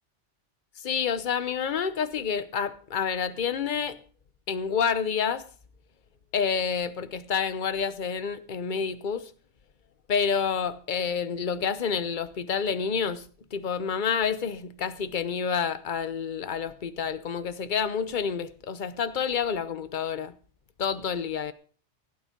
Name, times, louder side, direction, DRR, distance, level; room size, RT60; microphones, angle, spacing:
voice 1, 0.8-4.0 4.5-5.4 6.3-9.3 10.1-13.3 13.5-20.3 20.8-21.5, left 6 dB, 45° left, 1.0 m, -28 dB
16.0 x 9.1 x 5.2 m
omnidirectional pair, 1.2 m